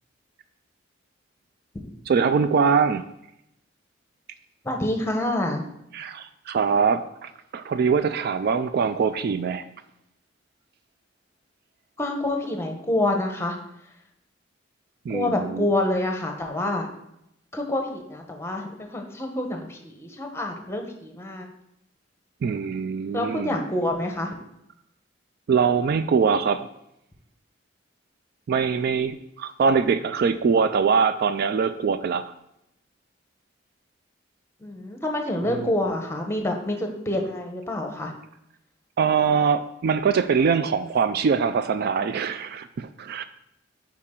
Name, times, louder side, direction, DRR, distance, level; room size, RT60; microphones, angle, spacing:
voice 1, 2.1-3.0 5.9-9.6 15.1-15.7 22.4-23.6 25.5-26.7 28.5-32.3 35.5-35.7 39.0-43.2, right 6 dB, 55° right, 12 dB, 0.3 m, -23 dB
voice 2, 4.6-5.6 12.0-13.6 15.1-16.9 17.5-21.5 23.1-24.3 34.6-38.1, left 1 dB, 15° left, 3 dB, 0.9 m, -27 dB
8.4 x 4.8 x 3.7 m, 0.81 s
head